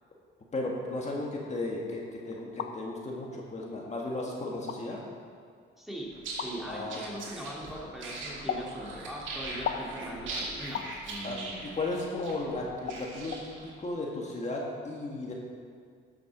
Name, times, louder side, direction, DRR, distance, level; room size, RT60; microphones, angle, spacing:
voice 1, 0.5-5.0 6.7-7.0 11.2-15.3, left 2 dB, 35° left, -2 dB, 1.9 m, -35 dB
sound 1, 2.3-2.7 3.6-3.7 4.5-4.8 6.4-6.5 8.5-8.7 9.7-9.9 10.7-10.9 12.2-12.3 12.9-13.0 13.3-13.4, left 9 dB, 65° left, 0.8 m, -34 dB
voice 2, 5.8-11.6 11.9-12.1, right 1 dB, ahead, -4 dB, 2.3 m, -41 dB
sound 2, 6.1-13.7, right 2 dB, 75° right, 2.6 m, -40 dB
12.5 x 7.0 x 6.1 m, 2.1 s
cardioid pair, 90°, 20 cm